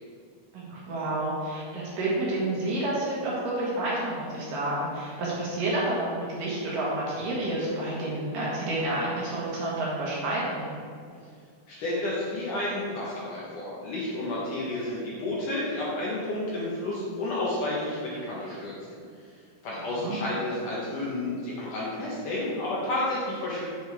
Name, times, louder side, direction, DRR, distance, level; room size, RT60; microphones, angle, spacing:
voice 1, 0.5-10.7 19.9-20.2, right 1 dB, 60° right, -6 dB, 2.8 m, -29 dB
voice 2, 11.7-19.0 19.6-23.7, left 1 dB, 65° left, -6 dB, 2.3 m, -31 dB
7.9 x 7.8 x 3.5 m, 2.2 s
omnidirectional pair, 4.8 m